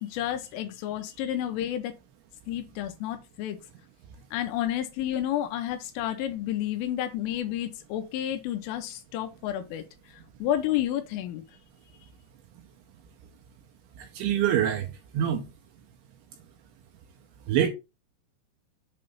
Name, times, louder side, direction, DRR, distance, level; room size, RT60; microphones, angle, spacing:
voice 1, 0.0-1.9 2.5-3.6 4.3-9.8 10.4-11.4, left 12 dB, 90° left, 3.3 m, -30 dB
voice 2, 14.0-14.9 15.1-15.4 17.5-17.7, right 10 dB, 80° right, 2.9 m, -25 dB
7.8 x 3.2 x 5.2 m
omnidirectional pair, 5.8 m